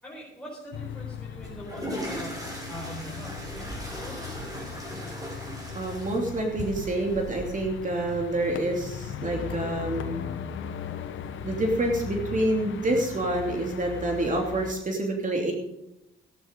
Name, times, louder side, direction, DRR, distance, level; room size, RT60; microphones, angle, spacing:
voice 1, 0.0-2.4 2.7-5.2, equal, 5° left, -6 dB, 5.1 m, -43 dB
sound 1, 0.7-14.7, left 7 dB, 75° left, 1.3 m, -38 dB
sound 2, 1.4-7.4, right 1 dB, 20° right, 6.0 m, -38 dB
voice 2, 5.7-10.3 11.4-15.5, right 1 dB, 40° right, 2 dB, 2.9 m, -27 dB
13.5 x 11.5 x 5.3 m, 0.87 s
cardioid pair, 90°, 20 cm